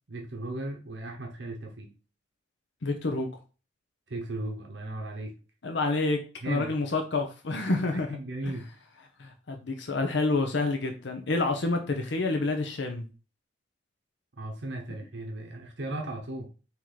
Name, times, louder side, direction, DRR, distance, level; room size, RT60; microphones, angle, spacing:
voice 1, 0.1-1.9 4.1-5.3 6.4-6.7 7.7-8.7 14.4-16.5, right 2 dB, 65° right, 1 dB, 0.8 m, -36 dB
voice 2, 2.8-3.4 5.6-6.2 6.5-8.2 8.4-8.6 9.2-13.0, left 3 dB, 70° left, 5 dB, 0.7 m, -28 dB
4.6 x 3.0 x 3.9 m, 0.34 s
head